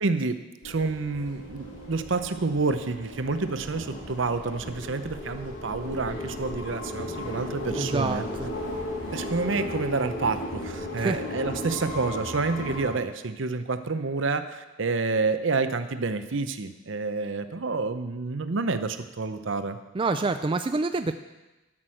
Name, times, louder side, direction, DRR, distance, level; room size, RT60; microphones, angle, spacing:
voice 1, 0.0-0.4 0.6-8.2 9.1-19.8, right 3 dB, 65° right, 10 dB, 0.8 m, -28 dB
sound 1, 0.6-12.9, left 1 dB, 75° left, 2.7 m, -36 dB
voice 2, 7.7-8.5 11.0-11.2 19.9-21.1, right 3 dB, 25° right, 8 dB, 0.4 m, -27 dB
12.5 x 6.2 x 7.6 m, 1.1 s
head